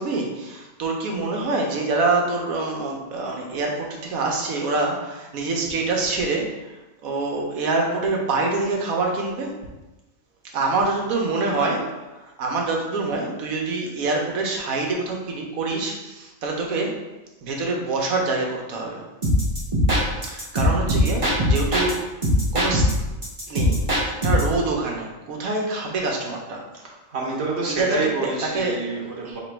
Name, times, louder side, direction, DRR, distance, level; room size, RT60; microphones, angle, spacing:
voice 1, 0.0-6.7 7.0-9.5 10.5-17.0 17.4-19.1 20.2-22.0 22.5-22.9 23.5-23.8 24.2-26.6 27.8-28.8 29.2-29.4, right 3 dB, 90° right, 0 dB, 1.3 m, -25 dB
sound 1, 19.2-21.9 22.2-24.6, left 1 dB, 30° right, 0.8 m, -21 dB
voice 2, 26.8-29.4, right 3 dB, 55° right, -2 dB, 1.1 m, -27 dB
3.4 x 3.0 x 4.5 m, 1.1 s
omnidirectional pair, 1.4 m